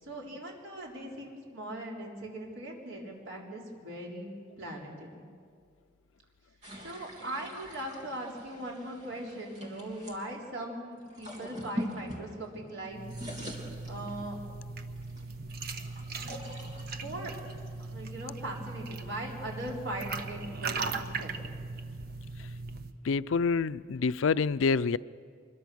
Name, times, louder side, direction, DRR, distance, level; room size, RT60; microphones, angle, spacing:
voice 1, 0.0-4.3 4.6-5.3 6.8-13.0 13.8-14.4 17.0-17.3 17.9-21.6, right 1 dB, 80° right, -2 dB, 4.1 m, -40 dB
sound 1, 6.6-10.2 11.0-12.7 13.0-14.5 15.0-18.4, equal, 35° right, 2.9 m, -44 dB
sound 2, 12.9-22.9, right 3 dB, 50° right, 1.1 m, -39 dB
voice 2, 23.0-25.0, left 5 dB, 85° left, 16 dB, 0.5 m, -27 dB
24.5 x 21.5 x 6.3 m, 2.1 s
head